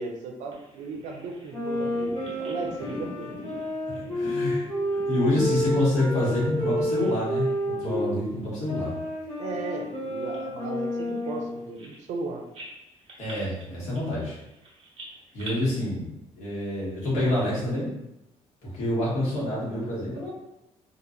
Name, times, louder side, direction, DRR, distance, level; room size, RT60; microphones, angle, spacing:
voice 1, 0.0-3.5 9.4-12.4, right 4 dB, 90° right, 2 dB, 0.5 m, -36 dB
Bird vocalization bird call bird song, 0.5-6.5 6.8-7.7 8.0-8.2 8.8-12.2 12.5-15.5, right 1 dB, 55° right, 1.1 m, -46 dB
sound 1, 1.5-8.2 8.7-11.6, equal, 45° left, 1.4 m, -30 dB
voice 2, 3.9-8.9 13.2-14.4 15.3-16.1 16.3-17.9 18.6-20.3, left 1 dB, 75° left, -8 dB, 1.5 m, -27 dB
3.0 x 2.5 x 2.6 m, 0.87 s
cardioid pair, 145°, 12 cm